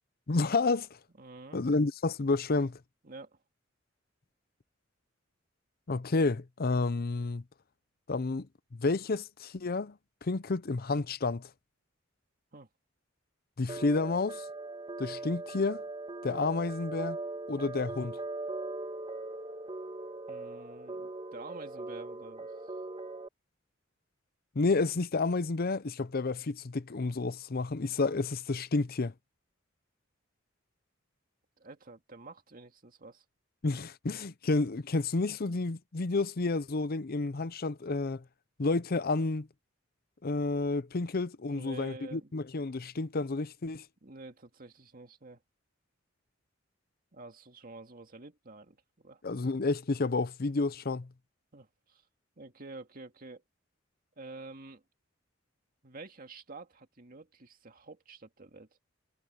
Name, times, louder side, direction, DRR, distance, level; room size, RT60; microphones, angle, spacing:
voice 1, 0.3-0.9 1.5-2.8 5.9-7.4 8.1-8.5 8.7-11.5 13.6-14.4 15.0-15.8 16.2-17.2 17.5-18.2 24.6-29.1 33.6-38.2 38.6-39.5 40.2-43.8 49.2-51.1, left 3 dB, 50° left, 0.7 m, -30 dB
voice 2, 1.2-1.6 3.0-3.4 12.5-12.7 20.3-22.7 31.6-33.2 34.9-35.0 41.5-42.3 44.0-45.4 47.1-49.2 51.5-52.0 52.4-53.4 54.2-54.8 55.8-58.7, right 3 dB, 45° right, 2.2 m, -48 dB
sound 1, 13.7-23.3, right 2 dB, 25° right, 2.2 m, -40 dB
head